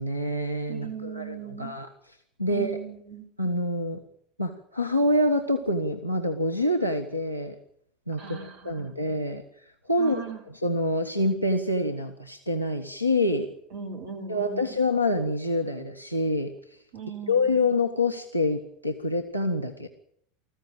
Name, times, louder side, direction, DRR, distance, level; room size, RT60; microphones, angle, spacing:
voice 1, 0.0-1.9 2.4-2.8 3.4-4.0 4.4-7.5 8.1-9.4 9.9-13.5 14.3-16.5 17.3-19.9, left 1 dB, 90° right, 6 dB, 1.3 m, -26 dB
voice 2, 0.7-1.7 2.5-3.3 8.2-8.9 10.0-10.4 13.7-14.7 16.9-17.5, right 6 dB, 50° right, 4 dB, 3.4 m, -38 dB
20.0 x 15.0 x 9.0 m, 0.68 s
figure-of-eight pair, 80°, 0 cm